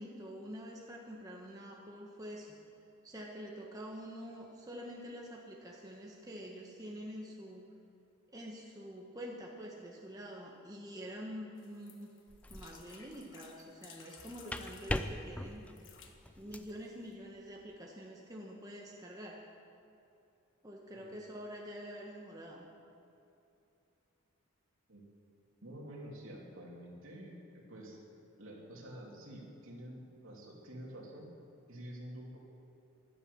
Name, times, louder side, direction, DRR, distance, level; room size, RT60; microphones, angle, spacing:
voice 1, 0.0-2.6 3.0-7.7 8.3-12.1 12.5-15.7 16.4-19.4 20.6-22.7, equal, 15° right, -2 dB, 1.2 m, -46 dB
sound 1, 11.6-15.1 15.6-16.2 16.8-16.9 17.1-17.2, left 7 dB, 55° left, 1.5 m, -57 dB
sound 2, 12.3-12.8 14.2-16.8, left 1 dB, 5° left, 0.4 m, -40 dB
voice 2, 25.6-28.0 28.4-31.3 31.7-32.4, equal, 65° right, -2 dB, 3.0 m, -48 dB
15.0 x 11.5 x 6.9 m, 2.8 s
head